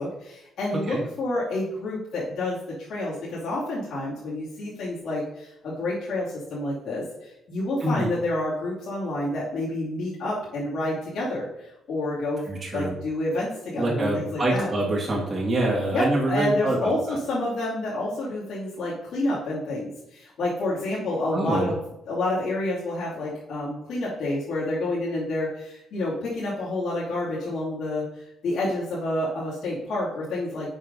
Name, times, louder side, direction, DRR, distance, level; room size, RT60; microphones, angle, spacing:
voice 1, 0.0-12.4 12.7-14.7 15.9-21.8 22.1-30.8, left 1 dB, 75° left, -9 dB, 2.6 m, -29 dB
voice 2, 12.5-12.9 13.8-16.8 17.1-17.2 21.3-21.7, right 1 dB, 35° right, -5 dB, 2.4 m, -25 dB
6.3 x 4.8 x 5.4 m, 0.83 s
cardioid pair, 90°, 0 cm